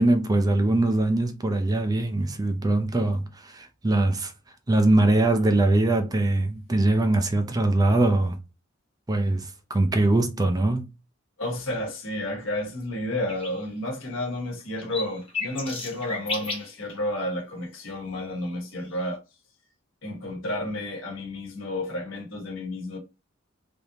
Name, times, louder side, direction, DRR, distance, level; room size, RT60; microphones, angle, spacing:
voice 1, 0.0-4.3 4.7-8.4 9.1-10.9, right 2 dB, 20° right, 0.4 m, -22 dB
voice 2, 11.4-19.2 20.0-23.0, left 1 dB, 70° left, 1.2 m, -31 dB
sound 1, 13.3-13.6 14.0-14.1 14.6-16.7 18.8-19.0, left 3 dB, 30° left, 1.1 m, -33 dB
3.3 x 2.6 x 2.8 m
head